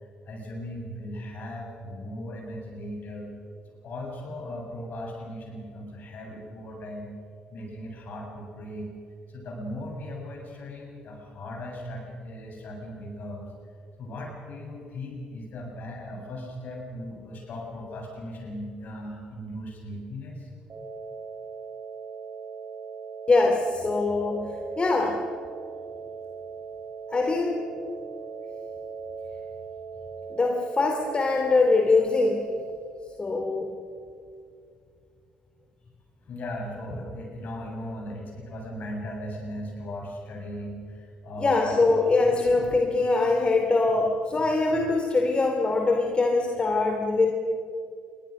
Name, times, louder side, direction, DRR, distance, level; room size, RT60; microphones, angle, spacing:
voice 1, 0.3-7.1 7.5-8.9 9.3-13.4 14.0-20.5 36.3-41.8, left 1 dB, 50° left, 1 dB, 7.5 m, -38 dB
sound 1, 20.7-32.7, right 5 dB, 45° right, 4.3 m, -39 dB
voice 2, 23.3-25.2 27.1-27.6 30.3-32.5 33.2-33.7 41.4-47.3, left 3 dB, 25° left, 3 dB, 2.8 m, -23 dB
28.0 x 22.5 x 6.6 m, 2.4 s
figure-of-eight pair, 45°, 4 cm